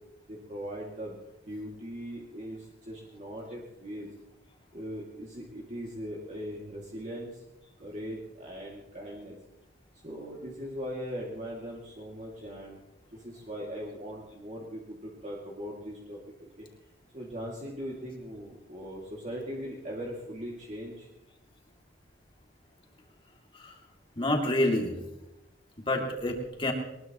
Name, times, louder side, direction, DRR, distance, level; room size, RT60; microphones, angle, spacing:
voice 1, 0.3-1.2 1.5-4.1 4.7-7.4 7.8-9.4 10.0-12.8 13.1-16.7 17.1-21.1 26.0-26.1, equal, 40° right, -3 dB, 2.5 m, -40 dB
voice 2, 24.2-25.0 25.9-26.7, left 1 dB, 25° left, 1 dB, 2.6 m, -28 dB
22.0 x 20.5 x 3.1 m, 0.97 s
head